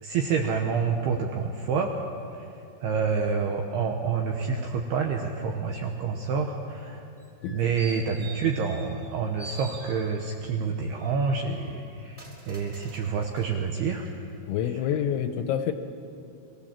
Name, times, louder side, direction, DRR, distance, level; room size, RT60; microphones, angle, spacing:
voice 1, 0.0-1.9 2.3-2.5 2.8-7.1 7.5-14.1, right 5 dB, 80° right, 2 dB, 2.4 m, -28 dB
sound 1, 7.2-9.1 9.4-10.4 10.9-13.5 14.0-14.1, right 2 dB, 15° right, 2.2 m, -46 dB
voice 2, 14.5-15.7, left 9 dB, 80° left, 8 dB, 2.8 m, -27 dB
24.0 x 16.0 x 7.4 m, 2.7 s
omnidirectional pair, 5.8 m